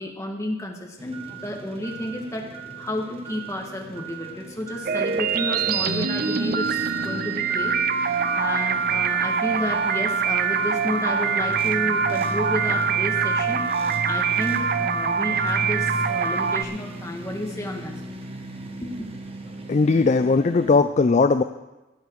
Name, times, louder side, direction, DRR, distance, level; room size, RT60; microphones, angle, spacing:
voice 1, 0.0-18.0 18.8-19.1, left 1 dB, 15° left, 0 dB, 1.7 m, -31 dB
sound 1, 1.0-20.8, right 1 dB, 30° right, 1.0 m, -34 dB
sound 2, 4.9-16.6, right 6 dB, 45° right, 0.5 m, -24 dB
voice 2, 19.7-21.4, left 4 dB, 35° left, 10 dB, 0.3 m, -18 dB
18.5 x 8.8 x 4.7 m, 1.1 s
head